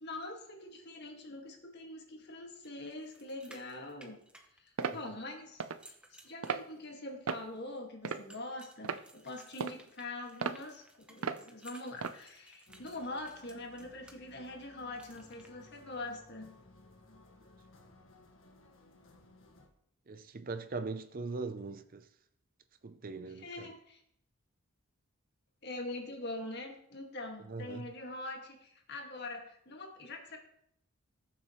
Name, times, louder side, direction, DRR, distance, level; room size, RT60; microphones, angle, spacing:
voice 1, 0.0-4.2 4.6-5.9 6.2-10.8 11.1-16.5 23.3-24.0 25.6-30.4, left 2 dB, 50° left, 1.9 m, -44 dB
sound 1, 2.6-5.2 5.6-7.1 8.3-14.2 14.9-15.5, right 1 dB, 5° right, 0.9 m, -59 dB
sound 2, 4.8-5.0 5.6-5.8 6.4-6.6 7.3-7.5 8.0-8.4 8.8-9.0 9.6-9.8 10.4-10.6 11.2-11.4 12.0-12.2, right 5 dB, 80° right, 0.6 m, -35 dB
Orchestra Music, 12.7-19.7, left 2 dB, 65° left, 1.7 m, -59 dB
voice 2, 20.1-22.1 22.8-23.7 27.5-27.9, right 3 dB, 40° right, 0.5 m, -40 dB
19.0 x 7.5 x 3.1 m
head